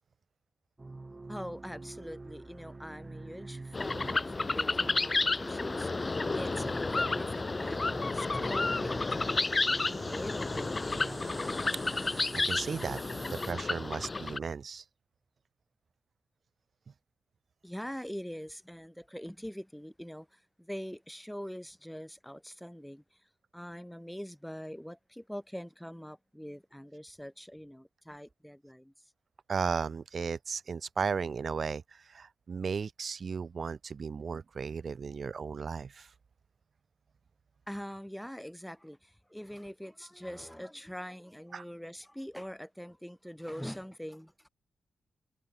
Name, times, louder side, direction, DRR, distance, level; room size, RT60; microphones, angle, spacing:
sound 1, 0.8-13.5, right 3 dB, 25° right, 3.4 m, -45 dB
voice 1, 1.3-5.9 6.3-11.4 17.6-20.3 20.6-23.0 23.5-28.9 37.7-44.3, equal, ahead, 1.9 m, -43 dB
sound 2, 3.7-14.4, left 3 dB, 25° left, 0.8 m, -31 dB
voice 2, 11.7-14.8 29.5-36.1 41.5-41.6, right 5 dB, 50° right, 1.4 m, -35 dB
wide cardioid pair, 110°, 0 cm